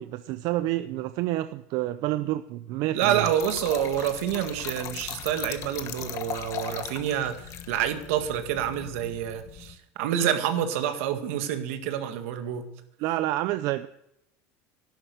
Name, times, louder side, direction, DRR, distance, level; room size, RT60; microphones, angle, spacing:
voice 1, 0.0-3.3 13.0-13.9, right 15 dB, 55° right, 12 dB, 0.6 m, -28 dB
voice 2, 2.9-12.7, right 10 dB, 80° right, 8 dB, 1.9 m, -28 dB
Trickle dribble / Fill (with liquid), 3.0-9.8, left 10 dB, 45° left, 1.3 m, -39 dB
12.0 x 11.5 x 6.9 m, 0.80 s
supercardioid pair, 135°, 7 cm